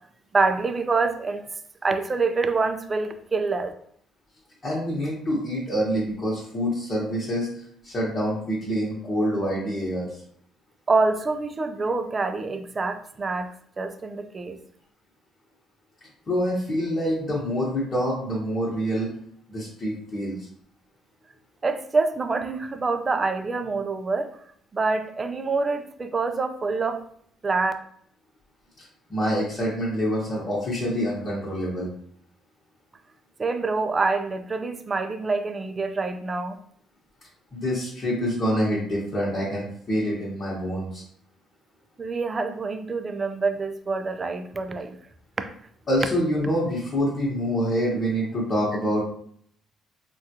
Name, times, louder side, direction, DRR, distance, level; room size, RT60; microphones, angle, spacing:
voice 1, 0.3-1.4 1.8-3.7 10.9-14.6 21.6-24.3 24.7-27.0 27.4-27.7 33.4-36.6 42.0-45.0, right 3 dB, 30° right, 8 dB, 0.3 m, -26 dB
voice 2, 4.6-7.5 7.8-10.2 16.3-19.1 19.5-20.5 28.8-31.9 37.5-41.0 45.9-49.0, equal, 35° left, -7 dB, 1.0 m, -26 dB
3.5 x 2.3 x 2.8 m, 0.63 s
cardioid pair, 110°, 0 cm